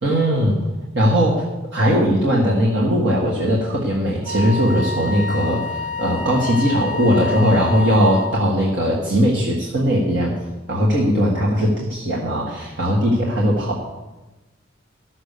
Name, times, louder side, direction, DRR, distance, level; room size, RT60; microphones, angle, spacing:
voice 1, 0.0-0.6 0.9-1.4 1.7-5.6 6.0-10.3 10.7-13.8, equal, 60° right, -4 dB, 1.6 m, -19 dB
Wind instrument woodwind instrument, 4.2-8.5, left 3 dB, 10° right, 0.6 m, -28 dB
12.5 x 6.0 x 6.7 m, 1.1 s
head